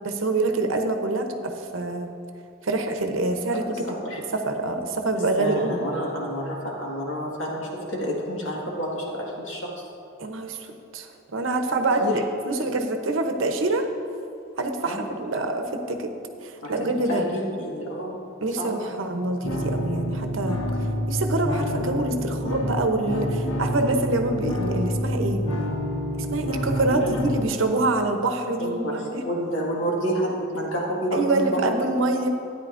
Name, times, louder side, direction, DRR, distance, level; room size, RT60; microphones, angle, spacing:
voice 1, 0.0-2.1 2.6-3.9 4.3-5.8 10.2-13.9 14.6-16.1 16.4-17.3 18.4-20.6 21.1-25.4 26.2-29.2 31.1-32.3, right 2 dB, 75° right, 5 dB, 0.8 m, -26 dB
voice 2, 5.4-9.8 12.0-12.2 14.8-15.1 16.6-18.8 26.9-27.1 28.6-28.9 29.2-31.8, equal, 65° left, -3 dB, 1.9 m, -29 dB
sound 1, 19.4-27.4, equal, 85° left, 1.0 m, -27 dB
12.5 x 9.4 x 2.5 m, 2.7 s
head